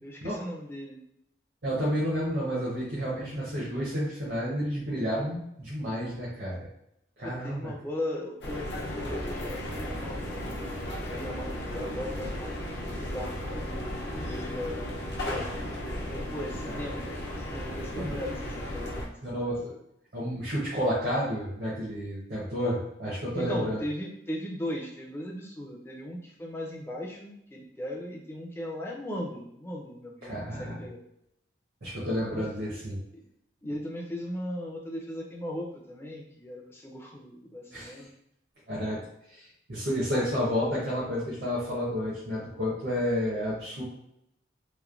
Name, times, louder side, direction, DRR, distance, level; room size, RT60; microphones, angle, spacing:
voice 1, 0.0-1.0 7.2-10.4 11.0-15.5 16.1-17.1 17.4-19.5 23.3-31.0 32.3-32.4 33.1-33.2 33.6-38.1, left 1 dB, 15° left, -1 dB, 0.4 m, -38 dB
voice 2, 1.6-6.7 7.2-7.7 16.7-16.8 18.0-18.1 19.2-19.8 20.1-23.8 30.2-30.8 31.8-33.0 37.7-38.0 38.7-39.0 39.3-43.8, equal, 65° right, -8 dB, 0.7 m, -30 dB
sound 1, 8.4-19.1, left 1 dB, 75° left, 0.6 m, -35 dB
3.1 x 2.1 x 2.4 m, 0.78 s
head